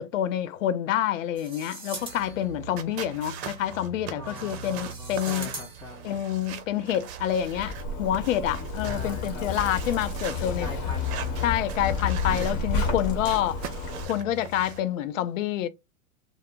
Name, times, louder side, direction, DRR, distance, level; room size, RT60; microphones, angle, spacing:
voice 1, 0.0-5.5 6.0-10.7 11.4-13.7 14.1-15.7, left 11 dB, 65° left, 0.6 m, -28 dB
sound 1, 1.3-2.6 4.3-6.0, right 3 dB, 15° right, 0.9 m, -42 dB
sound 2, 2.0-14.8, right 6 dB, 55° right, 0.6 m, -41 dB
voice 2, 4.1-6.2 8.8-9.5 10.3-11.5, left 2 dB, 10° left, 0.4 m, -42 dB
Zipper (clothing), 7.4-14.1, left 3 dB, 45° left, 1.1 m, -30 dB
2.1 x 2.1 x 3.5 m
hypercardioid pair, 105°, 41 cm